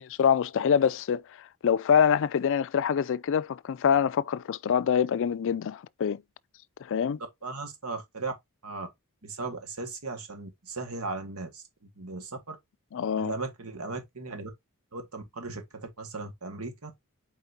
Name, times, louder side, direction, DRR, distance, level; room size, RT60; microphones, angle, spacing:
voice 1, 0.0-6.2 6.8-7.2 12.9-13.3, left 7 dB, 60° left, 0.4 m, -25 dB
voice 2, 7.4-8.3 8.6-8.9 9.2-11.6 12.0-12.5 13.1-14.5 14.9-16.9, right 3 dB, 85° right, 1.8 m, -37 dB
7.9 x 4.5 x 2.8 m
head